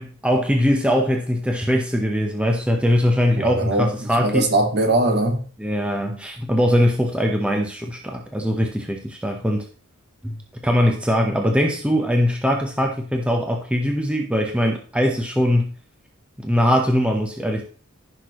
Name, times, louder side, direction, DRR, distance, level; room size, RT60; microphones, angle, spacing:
voice 1, 0.0-4.5 5.6-9.6 10.2-10.4 10.6-15.7 16.4-17.6, equal, 5° right, 0.9 m, -21 dB
voice 2, 3.4-3.9 4.2-5.4, right 2 dB, 50° right, 1.9 m, -20 dB
15.0 x 6.0 x 3.1 m
head